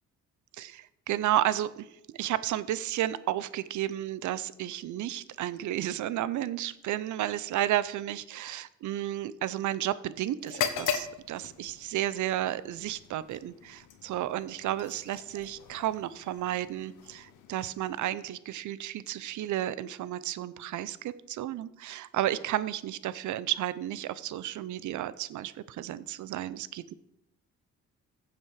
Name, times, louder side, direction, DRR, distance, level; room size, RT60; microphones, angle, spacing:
voice 1, 0.5-1.9 2.1-26.9, right 13 dB, 75° right, 16 dB, 0.7 m, -32 dB
sound 1, 10.4-18.2, left 8 dB, 85° left, 1.2 m, -39 dB
15.0 x 7.4 x 4.8 m, 0.83 s
cardioid pair, 90°, 30 cm